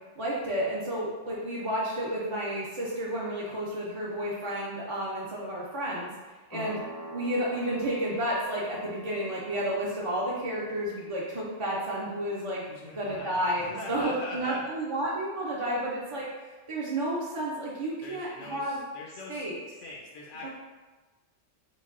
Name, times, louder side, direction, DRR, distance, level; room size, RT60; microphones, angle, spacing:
voice 1, 0.2-6.8 7.1-12.7 12.9-16.3 16.7-18.8 19.3-19.6 20.4-20.5, right 1 dB, 45° right, -6 dB, 0.4 m, -31 dB
sound 1, 6.5-14.9, right 1 dB, 25° left, 0.5 m, -48 dB
voice 2, 12.7-14.6 15.8-15.9 18.0-20.5, left 2 dB, 80° left, -2 dB, 1.0 m, -43 dB
3.8 x 2.2 x 3.6 m, 1.2 s
omnidirectional pair, 1.2 m